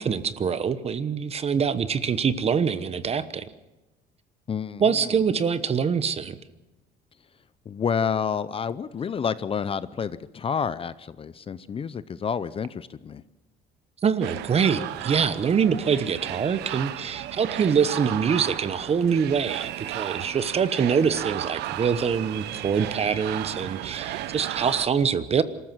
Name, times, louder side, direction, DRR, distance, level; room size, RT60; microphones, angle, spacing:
voice 1, 0.0-3.5 4.8-6.4 14.0-25.4, right 6 dB, 35° right, 14 dB, 1.1 m, -24 dB
voice 2, 4.5-5.2 7.7-13.2, left 7 dB, 35° left, 16 dB, 0.6 m, -29 dB
sound 1, 14.2-24.9, right 14 dB, 85° right, 0.8 m, -34 dB
26.0 x 14.0 x 7.5 m, 1.0 s
cardioid pair, 110°, 17 cm